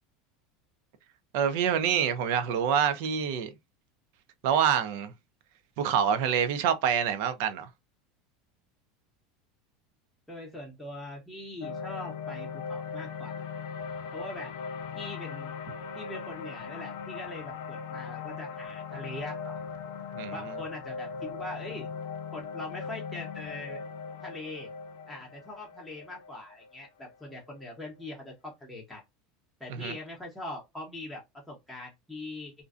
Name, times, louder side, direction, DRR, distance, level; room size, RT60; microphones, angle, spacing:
voice 1, 1.3-3.5 4.4-5.1 5.8-7.7 20.1-20.4 29.7-29.9, right 8 dB, 55° right, 0.4 m, -26 dB
voice 2, 10.3-13.3 14.1-14.5 15.0-15.5 15.9-19.6 20.3-21.9 22.3-23.8 24.2-24.7 25.1-29.0 29.6-32.5, left 1 dB, ahead, 0.7 m, -42 dB
sound 1, 11.6-27.9, left 6 dB, 60° left, 0.5 m, -39 dB
2.5 x 2.1 x 2.4 m
supercardioid pair, 175°, 0 cm